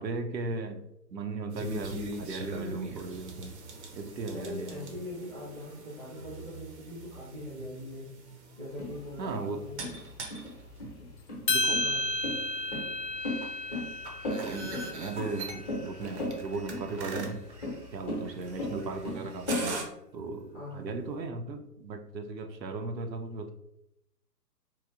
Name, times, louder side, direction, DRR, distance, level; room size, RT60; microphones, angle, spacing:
voice 1, 0.0-3.6 3.9-4.9 9.2-9.7 11.5-11.8 14.4-17.4 17.9-19.8 20.1-23.5, right 3 dB, 90° right, 0.6 m, -37 dB
sound 1, 1.5-19.8, right 2 dB, 45° right, 0.6 m, -43 dB
voice 2, 4.3-8.1 8.6-9.9 11.7-12.0 20.5-20.9, left 1 dB, 5° left, 0.5 m, -41 dB
sound 2, 8.8-19.6, left 1 dB, 25° left, 0.9 m, -36 dB
sound 3, 11.5-15.9, left 2 dB, 80° left, 0.7 m, -33 dB
3.0 x 2.7 x 2.4 m
figure-of-eight pair, 125°, 49 cm